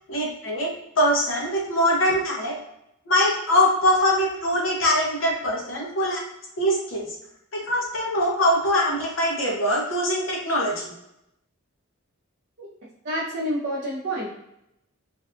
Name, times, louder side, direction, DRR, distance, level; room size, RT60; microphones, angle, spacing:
voice 1, 0.1-2.5 3.1-6.2 6.6-7.1 7.5-10.9, left 1 dB, 60° left, -2 dB, 0.7 m, -23 dB
voice 2, 13.0-14.3, equal, 50° right, -8 dB, 0.6 m, -28 dB
2.5 x 2.3 x 2.4 m, 0.80 s
head